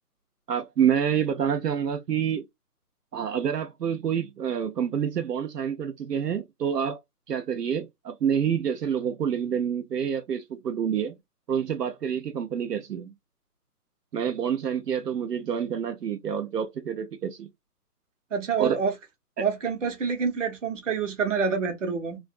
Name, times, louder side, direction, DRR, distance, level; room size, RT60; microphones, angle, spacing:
voice 1, 0.5-2.4 3.1-7.0 7.3-11.2 11.5-13.1 14.1-17.5 18.6-18.8 19.4-19.5, right 8 dB, 80° right, 0.7 m, -27 dB
voice 2, 18.3-18.9 19.4-22.2, right 6 dB, 50° right, 0.9 m, -27 dB
2.4 x 2.1 x 2.3 m
hypercardioid pair, 170°, 47 cm